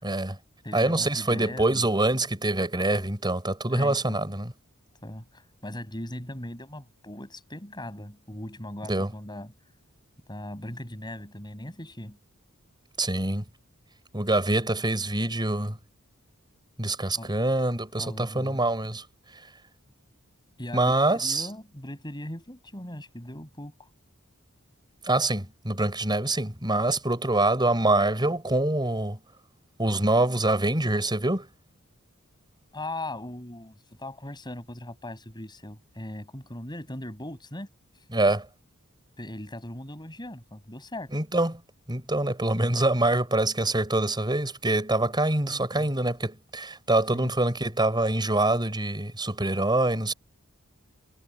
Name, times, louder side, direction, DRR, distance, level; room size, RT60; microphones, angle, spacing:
voice 1, 0.0-0.4 0.7-4.5 8.9-9.1 13.0-13.4 14.1-15.8 16.8-19.0 19.3-19.4 20.7-21.5 25.0-29.2 29.8-31.5 38.1-38.5 41.1-41.6 41.9-50.1, right 2 dB, 20° right, 5.6 m, -25 dB
voice 2, 0.6-1.9 3.7-4.2 5.0-9.5 10.3-12.2 17.2-17.4 18.0-18.6 20.6-23.9 32.7-37.7 39.2-41.1 45.4-45.9 47.1-47.3, left 1 dB, 20° left, 7.2 m, -39 dB
head